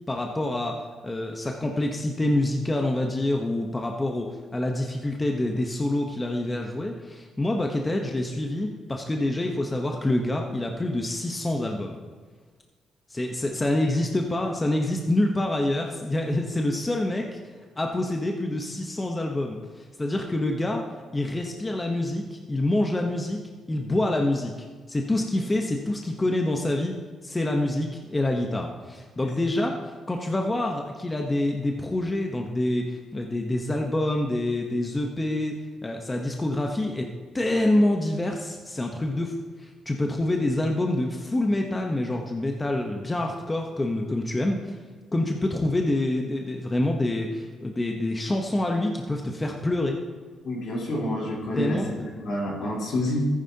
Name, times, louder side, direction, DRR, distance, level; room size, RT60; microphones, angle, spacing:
voice 1, 0.1-0.8 1.0-12.0 13.1-17.4 17.8-20.8 21.1-23.4 23.7-26.9 27.2-29.8 30.1-35.5 35.8-37.1 37.3-44.7 45.1-50.0 51.5-51.9, left 1 dB, 20° left, 2 dB, 1.0 m, -26 dB
voice 2, 50.4-51.8 52.2-53.3, left 1 dB, 70° left, -4 dB, 3.7 m, -28 dB
14.0 x 9.8 x 2.9 m, 1.5 s
cardioid pair, 90°, 0 cm